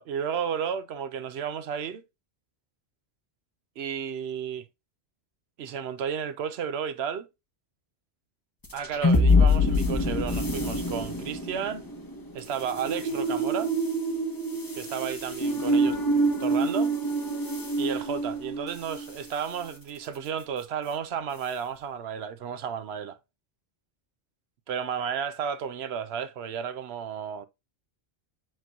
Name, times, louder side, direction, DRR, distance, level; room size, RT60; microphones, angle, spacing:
voice 1, 0.0-2.0 3.8-4.6 5.6-7.3 8.7-11.8 12.3-13.7 14.8-16.9 17.8-23.2 24.7-27.5, right 7 dB, 75° right, 0.9 m, -33 dB
sound 1, 8.6-19.1, left 1 dB, 20° left, 0.9 m, -26 dB
7.7 x 3.0 x 2.3 m
omnidirectional pair, 1.1 m